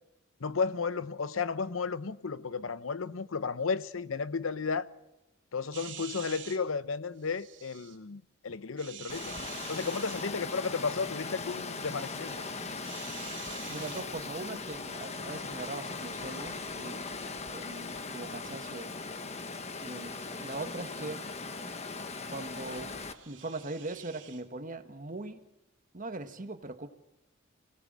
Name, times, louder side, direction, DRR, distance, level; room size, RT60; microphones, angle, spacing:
voice 1, 0.4-4.9 5.5-9.4 9.7-12.3, left 5 dB, 80° left, 0.8 m, -33 dB
sound 1, 5.7-6.6 7.2-8.0 8.8-10.3 12.1-14.1 23.1-24.4, right 10 dB, 65° right, 2.6 m, -47 dB
Water, 9.1-23.1, left 3 dB, 30° left, 1.2 m, -39 dB
voice 2, 13.7-17.1 17.4-18.9 19.8-21.2 22.3-23.0 23.2-25.4 25.9-26.9, right 2 dB, 40° right, 1.4 m, -40 dB
25.0 x 17.5 x 7.5 m
head